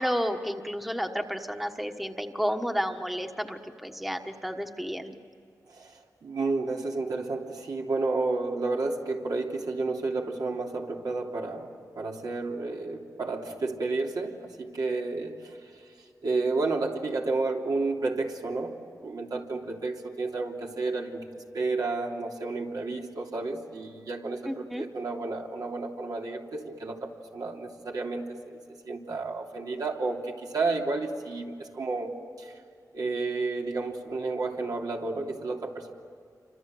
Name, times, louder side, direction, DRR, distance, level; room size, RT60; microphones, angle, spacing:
voice 1, 0.0-5.2 24.4-24.9, equal, ahead, 5 dB, 1.3 m, -31 dB
voice 2, 5.7-15.8 16.2-32.5 32.9-35.9, right 3 dB, 75° right, 0 dB, 3.1 m, -31 dB
29.0 x 25.5 x 7.8 m, 2.3 s
wide cardioid pair, 100°, 7 cm